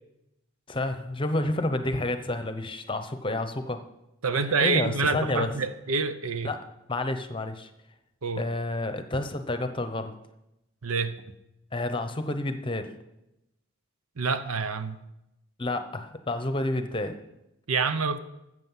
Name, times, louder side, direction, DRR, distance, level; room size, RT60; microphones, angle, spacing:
voice 1, 0.7-3.8 4.6-5.5 6.4-6.6 6.9-7.7 8.4-10.1 11.7-12.9 15.6-17.2, left 2 dB, 25° left, 0.8 m, -29 dB
voice 2, 4.2-6.5 8.2-8.5 10.8-11.2 14.2-15.0 17.7-18.2, right 4 dB, 80° right, 0.9 m, -27 dB
14.0 x 7.8 x 5.6 m
head